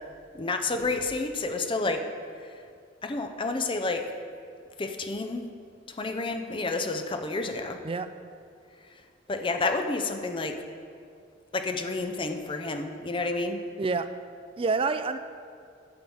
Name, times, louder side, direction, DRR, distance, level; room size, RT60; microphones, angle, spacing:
voice 1, 0.4-2.0 3.0-4.1 4.8-5.5 6.0-7.8 9.3-10.6 11.5-13.6, left 3 dB, 25° left, 6 dB, 0.6 m, -30 dB
voice 2, 14.6-15.2, right 4 dB, 30° right, 10 dB, 0.3 m, -27 dB
10.5 x 3.9 x 7.0 m, 2.3 s
head